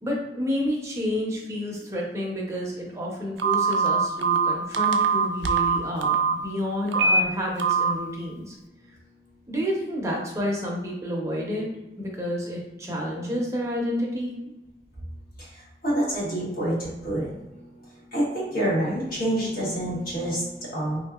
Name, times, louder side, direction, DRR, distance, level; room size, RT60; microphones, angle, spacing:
voice 1, 0.0-8.5 9.5-11.7 12.0-14.3, equal, 15° right, -3 dB, 0.7 m, -30 dB
Telephone, 3.4-6.3 6.9-7.2 7.6-7.9, right 5 dB, 80° right, 0.3 m, -22 dB
voice 2, 15.8-17.7 18.1-21.0, right 1 dB, 55° left, -6 dB, 1.3 m, -27 dB
3.5 x 2.7 x 2.3 m, 1.0 s
head